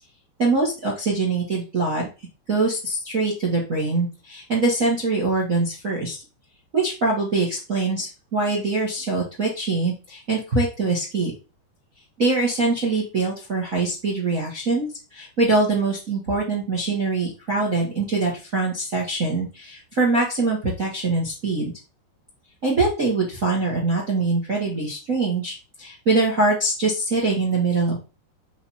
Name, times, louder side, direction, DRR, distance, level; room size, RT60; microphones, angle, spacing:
voice 1, 0.4-2.1 2.5-6.2 6.7-11.3 12.2-21.7 22.6-28.0, right 3 dB, 70° right, -2 dB, 0.7 m, -23 dB
5.6 x 5.3 x 4.3 m, 0.31 s
omnidirectional pair, 4.8 m